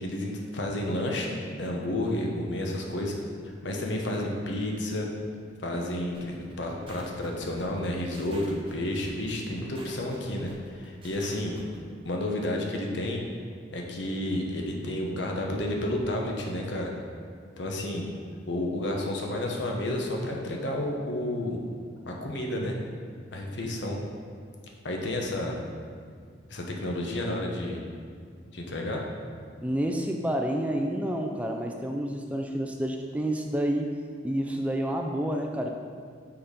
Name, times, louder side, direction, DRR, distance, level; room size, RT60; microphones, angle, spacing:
voice 1, 0.0-3.1 3.6-5.1 5.6-11.5 12.0-13.2 13.7-16.9 17.6-18.1 18.5-21.6 22.1-22.7 23.3-24.0 24.8-25.5 26.5-27.8 28.5-29.0, left 1 dB, 80° left, 0 dB, 0.9 m, -31 dB
sound 1, 6.1-11.8, right 1 dB, 30° right, 0.9 m, -48 dB
voice 2, 29.6-34.0 34.2-35.7, right 1 dB, 10° right, 2 dB, 0.3 m, -29 dB
5.7 x 4.1 x 5.0 m, 2.1 s
head